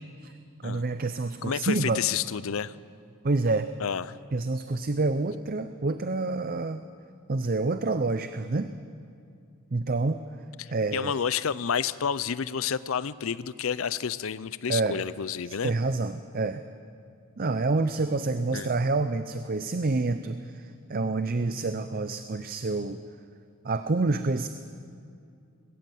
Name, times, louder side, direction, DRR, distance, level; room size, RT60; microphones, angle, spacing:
voice 1, 0.6-2.0 3.2-3.7 4.3-6.8 7.3-8.7 9.7-10.2 10.7-11.2 14.7-15.0 15.5-16.6 17.4-23.0 23.6-24.5, right 3 dB, 40° right, 10 dB, 0.6 m, -28 dB
voice 2, 1.4-2.7 3.8-4.2 10.6-15.7 18.5-18.7, left 7 dB, 70° left, 17 dB, 0.5 m, -30 dB
20.0 x 17.5 x 7.7 m, 2.4 s
head